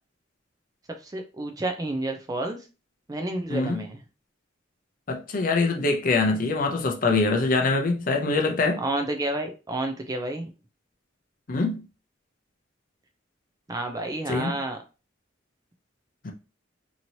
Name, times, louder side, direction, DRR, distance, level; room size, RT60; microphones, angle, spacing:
voice 1, 1.0-2.6 3.1-4.0 8.8-10.5 13.7-14.8, right 2 dB, 20° right, 0.4 m, -30 dB
voice 2, 3.5-3.8 5.1-8.8 11.5-11.8 14.3-14.6 16.2-16.3, left 3 dB, 45° left, 0.5 m, -24 dB
3.0 x 2.8 x 2.7 m
head